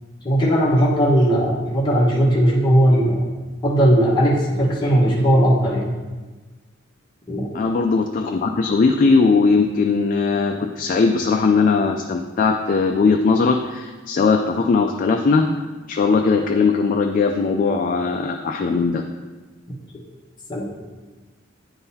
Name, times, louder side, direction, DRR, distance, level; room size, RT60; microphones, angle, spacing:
voice 1, 0.2-3.3 3.6-5.9 7.3-7.5 20.5-20.7, equal, 25° left, -6 dB, 1.2 m, -17 dB
voice 2, 7.5-15.5 15.9-19.0, left 4 dB, 45° left, 3 dB, 0.3 m, -19 dB
9.6 x 3.9 x 2.7 m, 1.3 s
head